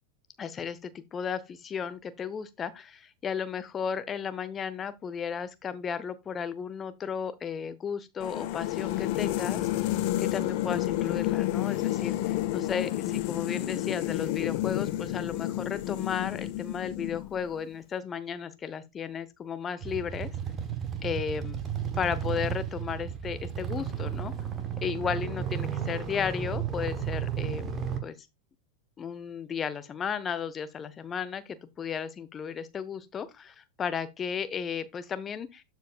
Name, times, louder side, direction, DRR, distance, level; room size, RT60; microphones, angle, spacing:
voice 1, 0.4-9.6 10.2-20.3 21.0-21.6 22.0-24.3 24.8-27.7 28.0-28.2 29.0-35.6, left 7 dB, 20° left, 0.9 m, -34 dB
sound 1, 8.2-17.5, left 14 dB, 45° left, 1.2 m, -30 dB
sound 2, 19.8-28.0, right 8 dB, 25° right, 1.2 m, -33 dB
13.5 x 4.7 x 2.4 m
figure-of-eight pair, 90°, 0 cm